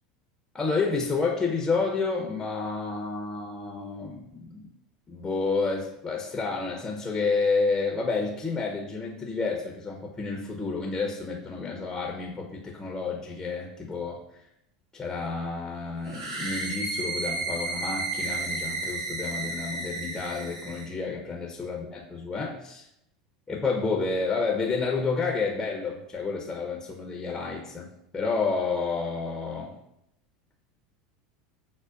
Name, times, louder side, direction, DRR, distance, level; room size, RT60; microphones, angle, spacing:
voice 1, 0.5-4.6 5.1-14.2 14.9-22.8 23.5-27.9 28.1-29.7, left 4 dB, 15° left, 0 dB, 0.7 m, -30 dB
sound 1, 16.1-20.9, right 3 dB, 85° right, 0.8 m, -32 dB
6.2 x 2.1 x 2.4 m, 0.81 s
hypercardioid pair, 90°, 3 cm